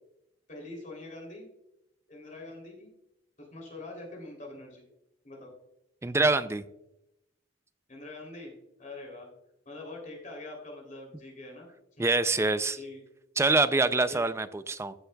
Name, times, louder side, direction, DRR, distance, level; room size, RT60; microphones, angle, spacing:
voice 1, 0.5-1.5 2.1-2.9 3.4-4.8 5.2-5.5 7.9-8.5 8.8-9.3 9.6-11.7 12.0-12.1 12.7-13.0 14.1-14.3, left 2 dB, 40° left, 0 dB, 3.1 m, -44 dB
voice 2, 6.0-6.6 12.0-12.8 13.4-14.9, right 3 dB, 15° right, 12 dB, 0.4 m, -25 dB
15.0 x 7.1 x 2.3 m, 0.86 s
head